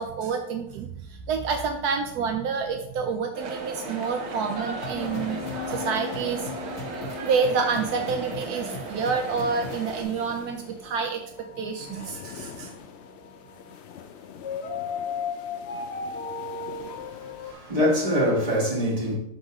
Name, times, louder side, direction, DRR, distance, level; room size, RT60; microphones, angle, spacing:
voice 1, 0.0-5.4 5.7-6.5 7.2-11.2 11.6-12.7, right 5 dB, 80° right, 1.1 m, -28 dB
sound 1, 3.3-10.0, right 3 dB, 50° right, 1.0 m, -36 dB
sound 2, 4.8-9.9, left 1 dB, 45° left, 1.5 m, -38 dB
sound 3, 4.9-17.5, left 6 dB, 75° left, 0.6 m, -37 dB
voice 2, 16.7-19.2, equal, 25° right, 1.6 m, -25 dB
5.3 x 3.7 x 4.8 m
omnidirectional pair, 1.7 m